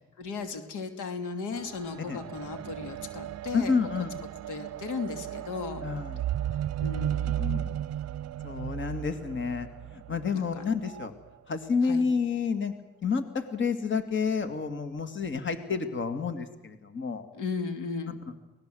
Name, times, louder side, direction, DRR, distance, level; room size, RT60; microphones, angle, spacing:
voice 1, 0.2-3.7 4.5-5.8 6.8-7.8 10.3-10.7 11.9-12.0 17.3-18.2, left 4 dB, 85° left, 7 dB, 2.7 m, -36 dB
sound 1, 1.5-11.1 11.9-12.0, right 11 dB, 55° right, 0.7 m, -35 dB
voice 2, 3.5-4.2 5.8-6.2 6.5-6.6 7.3-7.6 8.4-11.1 11.5-12.7 13.0-17.3, left 5 dB, 40° left, 8 dB, 2.2 m, -30 dB
24.5 x 19.0 x 7.8 m, 1.1 s
cardioid pair, 90°, 30 cm